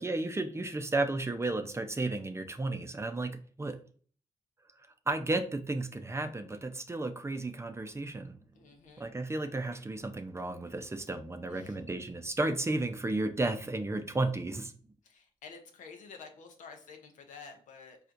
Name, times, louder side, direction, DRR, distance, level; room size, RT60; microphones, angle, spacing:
voice 1, 0.0-3.8 5.1-8.4 9.0-14.7, right 2 dB, 20° right, 7 dB, 0.5 m, -33 dB
voice 2, 8.5-9.1 11.5-11.8 15.0-18.0, left 5 dB, 75° left, 5 dB, 0.7 m, -50 dB
4.3 x 2.4 x 2.5 m, 0.44 s
supercardioid pair, 60°, 13 cm